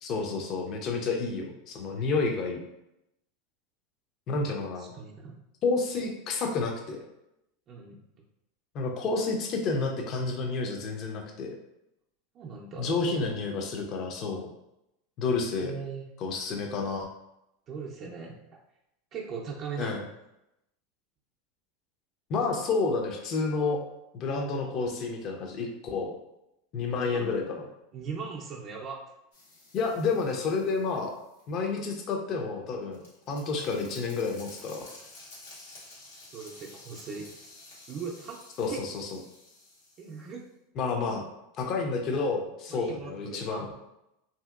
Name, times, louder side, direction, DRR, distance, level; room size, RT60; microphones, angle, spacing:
voice 1, 0.0-2.6 4.3-4.9 5.6-7.0 8.7-11.5 12.8-14.5 15.2-15.7 16.2-17.1 19.8-20.0 22.3-23.8 24.1-26.1 26.7-27.7 29.7-31.1 31.5-33.0 33.3-34.8 38.6-39.1 40.8-41.2 41.6-43.7, left 4 dB, 45° left, 2 dB, 0.6 m, -30 dB
voice 2, 4.8-5.4 7.7-8.0 12.3-13.0 15.6-16.1 17.7-18.4 19.1-20.1 27.1-27.3 27.9-29.0 36.3-37.3 37.9-38.4 38.7-38.8 40.0-40.4 42.7-43.7, right 5 dB, 40° right, -2 dB, 0.5 m, -39 dB
sound 1, 29.3-31.5 32.5-40.3, left 2 dB, 90° left, 1.0 m, -52 dB
2.7 x 2.7 x 2.4 m, 0.85 s
hypercardioid pair, 105°, 0 cm